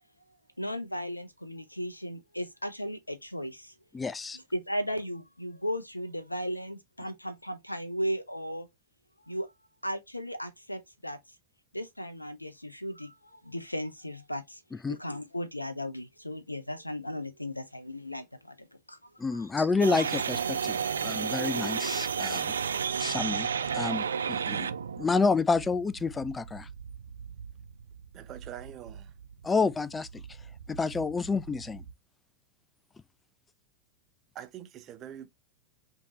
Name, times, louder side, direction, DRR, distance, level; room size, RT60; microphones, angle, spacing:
voice 1, 0.6-3.8 4.3-8.7 9.2-9.5 9.8-11.4 11.7-14.6 14.9-19.7 21.4-22.0, equal, 85° left, 0.5 m, -36 dB
voice 2, 3.9-4.4 14.8-15.0 19.2-22.5 23.0-23.5 23.7-24.7 25.0-26.7 29.4-30.2 30.7-31.8, left 4 dB, 15° left, 0.3 m, -29 dB
sound 1, 19.8-31.9, right 6 dB, 70° right, 0.3 m, -34 dB
voice 3, 28.1-29.1 34.3-35.3, right 10 dB, 30° right, 0.7 m, -44 dB
5.0 x 2.8 x 2.8 m
figure-of-eight pair, 90°, 0 cm